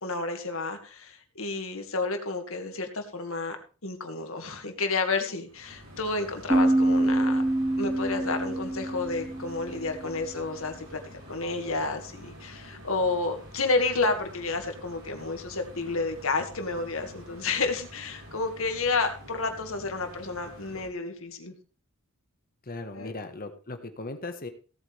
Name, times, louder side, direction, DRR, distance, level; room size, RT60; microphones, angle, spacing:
voice 1, 0.0-3.6 3.8-7.4 7.8-11.0 11.3-21.5 22.9-23.1, left 3 dB, 70° left, 5 dB, 2.1 m, -30 dB
sound 1, 5.5-20.9, equal, 75° right, 7.0 m, -47 dB
sound 2, 6.5-10.1, right 1 dB, 15° right, 1.4 m, -26 dB
voice 2, 22.7-24.5, left 2 dB, 45° left, 7 dB, 1.5 m, -38 dB
17.0 x 8.5 x 3.5 m, 0.37 s
head